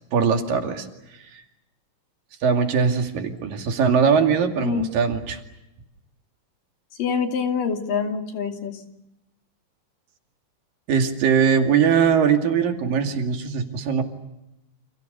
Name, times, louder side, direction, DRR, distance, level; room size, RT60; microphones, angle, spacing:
voice 1, 0.1-0.9 2.4-5.4 10.9-14.0, right 6 dB, 85° right, 4 dB, 4.1 m, -21 dB
voice 2, 4.6-4.9 7.0-8.8, left 6 dB, 75° left, 4 dB, 4.3 m, -25 dB
29.5 x 29.0 x 6.8 m, 0.91 s
omnidirectional pair, 3.9 m